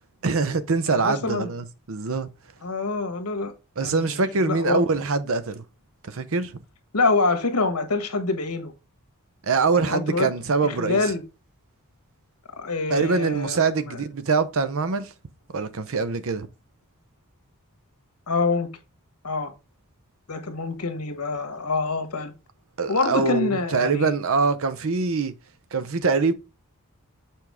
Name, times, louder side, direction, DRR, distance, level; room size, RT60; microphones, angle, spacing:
voice 1, 0.2-2.3 3.8-5.6 6.0-6.6 9.4-11.1 12.9-15.1 15.5-16.5 22.8-25.3 25.7-26.3, right 4 dB, 65° right, 0.7 m, -24 dB
voice 2, 0.9-1.5 2.6-3.5 3.8-4.8 6.9-8.7 9.8-10.3 10.6-11.2 12.6-13.6 13.9-14.0 18.3-18.7 19.2-19.5 20.3-22.3 22.9-24.1, left 3 dB, 85° left, 1.4 m, -26 dB
7.0 x 4.6 x 3.5 m
head